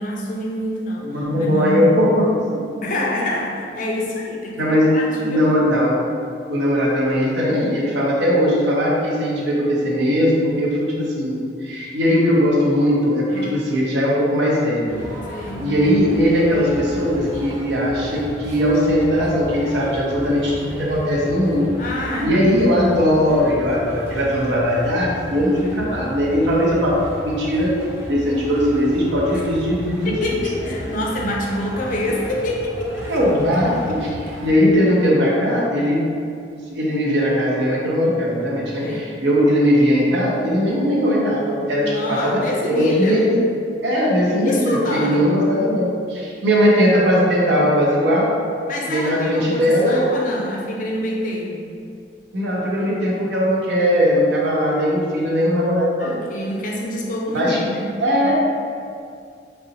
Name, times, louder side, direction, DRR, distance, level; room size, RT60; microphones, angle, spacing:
voice 1, 0.0-1.8 2.8-5.6 13.3-13.6 15.3-15.7 19.8-20.4 21.8-22.3 25.6-25.8 30.0-33.2 38.8-39.1 41.8-43.2 44.4-45.3 48.7-51.7 56.0-58.0 58.2-58.4, left 1 dB, 45° left, -2 dB, 0.4 m, -27 dB
voice 2, 1.0-2.4 4.6-4.9 5.2-6.0 6.5-15.0 15.6-21.7 22.2-27.0 27.2-27.7 28.1-30.4 33.1-34.1 34.4-36.0 36.7-43.4 43.8-48.3 48.9-50.0 52.3-56.2 57.3-57.6 58.0-58.4, equal, 70° right, -4 dB, 0.6 m, -19 dB
sound 1, 14.9-34.5, equal, 15° right, 0.5 m, -35 dB
3.7 x 2.0 x 2.7 m, 2.3 s
head